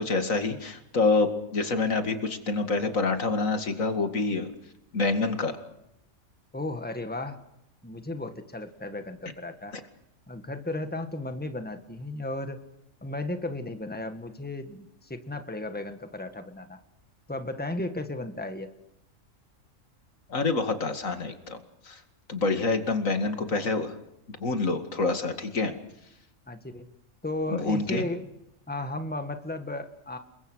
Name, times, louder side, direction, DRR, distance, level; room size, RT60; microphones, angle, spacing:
voice 1, 0.0-4.5 4.9-5.5 20.3-21.6 21.8-22.0 22.3-23.9 24.4-25.7 27.5-28.0, left 3 dB, 80° left, 7 dB, 2.6 m, -27 dB
voice 2, 6.5-7.4 7.8-9.8 10.3-12.6 13.0-16.8 17.3-18.7 26.5-26.9 27.2-28.3 28.7-30.2, left 2 dB, 5° left, 7 dB, 1.7 m, -34 dB
29.5 x 22.0 x 6.4 m, 0.83 s
omnidirectional pair, 1.4 m